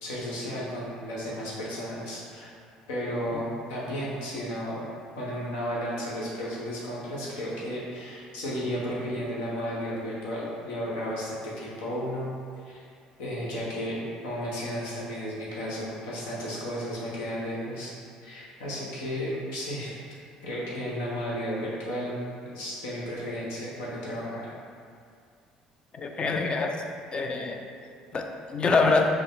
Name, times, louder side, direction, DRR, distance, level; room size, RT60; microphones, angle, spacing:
voice 1, 0.0-2.5 2.9-4.9 5.2-12.3 12.6-12.8 13.2-17.9 18.2-19.9 20.4-24.5, equal, 85° left, -6 dB, 1.1 m, -33 dB
voice 2, 25.9-26.7 27.1-27.6 28.1-29.1, left 4 dB, 35° left, 3 dB, 0.5 m, -25 dB
5.4 x 2.1 x 3.6 m, 2.3 s
supercardioid pair, 75°, 3 cm